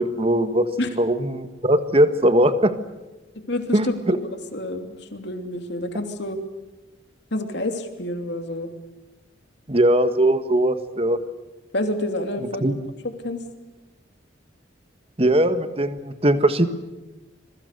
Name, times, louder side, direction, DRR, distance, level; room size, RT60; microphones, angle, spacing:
voice 1, 0.0-0.6 1.0-2.7 3.7-4.2 9.7-11.2 12.6-12.8 15.2-16.7, right 1 dB, 30° right, 10 dB, 1.6 m, -20 dB
voice 2, 3.5-6.4 7.3-8.7 11.7-12.7 13.2-13.4, left 1 dB, 60° left, 6 dB, 3.0 m, -28 dB
26.5 x 22.5 x 6.8 m, 1.1 s
head